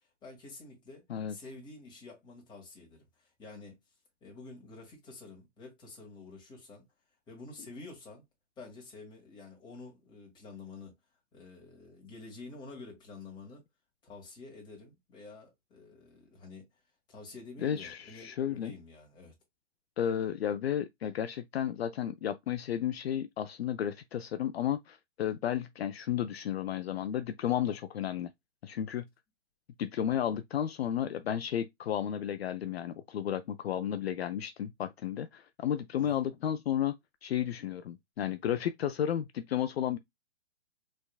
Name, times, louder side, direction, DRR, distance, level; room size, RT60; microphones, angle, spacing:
voice 1, 0.2-3.8 4.2-6.8 7.3-8.3 8.6-10.9 11.3-13.6 14.0-16.7 17.1-19.4 36.0-36.2, left 3 dB, 10° left, 1.8 m, -49 dB
voice 2, 17.6-18.7 20.0-28.3 28.6-29.1 29.8-36.9 37.2-40.0, left 10 dB, 60° left, 0.5 m, -33 dB
4.3 x 3.5 x 2.2 m
hypercardioid pair, 150°, 36 cm